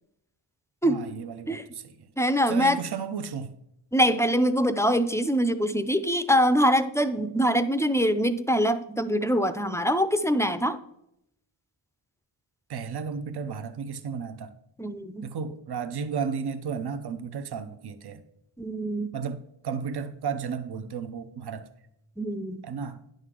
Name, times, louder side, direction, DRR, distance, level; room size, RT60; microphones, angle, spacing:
voice 1, 0.8-1.9 2.5-3.5 12.7-14.5 15.2-18.2 19.1-21.7 22.6-23.0, right 6 dB, 55° right, 0.7 m, -33 dB
voice 2, 2.2-2.8 3.9-10.8 14.8-15.3 18.6-19.1 22.2-22.6, equal, 5° left, 0.4 m, -24 dB
10.0 x 6.5 x 3.7 m
wide cardioid pair, 75°, 48 cm